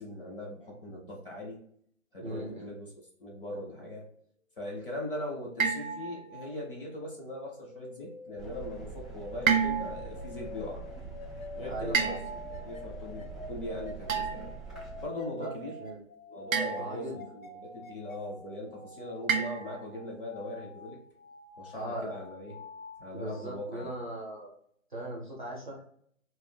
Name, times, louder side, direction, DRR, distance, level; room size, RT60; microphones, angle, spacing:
voice 1, 0.0-1.6 2.1-4.1 4.6-10.9 11.5-12.2 12.5-14.6 15.0-15.8 16.3-21.0 21.6-22.5 23.0-23.9, left 1 dB, 40° left, -3 dB, 0.7 m, -40 dB
voice 2, 2.2-2.7 11.7-12.2 15.4-16.0 16.8-17.3 21.7-22.1 23.1-24.5 24.9-25.9, right 1 dB, 35° right, -3 dB, 0.7 m, -39 dB
sound 1, 5.6-6.5 9.5-10.2 11.9-12.7 14.1-14.6 16.5-17.1 19.3-20.0, right 6 dB, 85° right, 0.6 m, -30 dB
sound 2, 7.2-23.9, left 3 dB, 80° left, 0.6 m, -48 dB
sound 3, 8.4-15.1, right 4 dB, ahead, 0.4 m, -44 dB
2.3 x 2.0 x 3.3 m, 0.64 s
hypercardioid pair, 175°, 40 cm